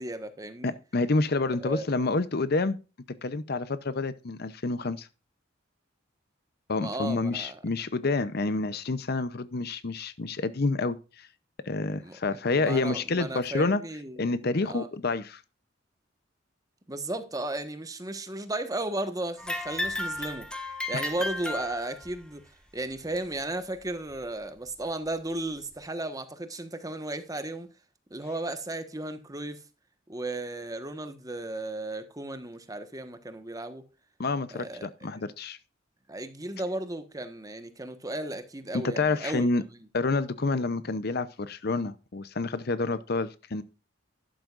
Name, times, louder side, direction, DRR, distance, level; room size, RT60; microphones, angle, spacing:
voice 1, 0.0-0.7 1.6-1.9 6.8-7.6 12.0-14.9 16.9-20.5 20.9-22.4 22.7-27.7 28.1-29.6 30.1-33.9 34.5-34.9 36.1-39.8, right 2 dB, 20° right, 1.3 m, -35 dB
voice 2, 0.6-2.8 3.1-5.1 6.7-11.3 11.6-13.8 14.2-15.4 20.9-21.0 34.2-35.6 38.7-39.6 39.9-43.6, left 3 dB, 55° left, 0.7 m, -28 dB
sound 1, 19.4-22.2 23.2-23.3 24.1-24.2 25.1-25.2, left 1 dB, 5° left, 1.6 m, -34 dB
12.0 x 11.5 x 2.5 m
head